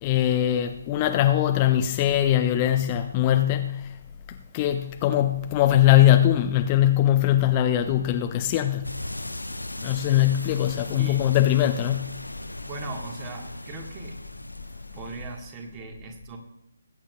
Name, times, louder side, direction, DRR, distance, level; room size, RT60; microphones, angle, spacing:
voice 1, 0.0-3.9 4.5-8.9 9.8-12.1, left 12 dB, 25° left, 0.6 m, -21 dB
sound 1, 8.8-15.7, left 1 dB, 80° left, 0.6 m, -37 dB
voice 2, 12.6-14.2 14.9-16.4, right 3 dB, 20° right, 1.5 m, -39 dB
20.5 x 9.0 x 2.4 m
figure-of-eight pair, 140°, 0 cm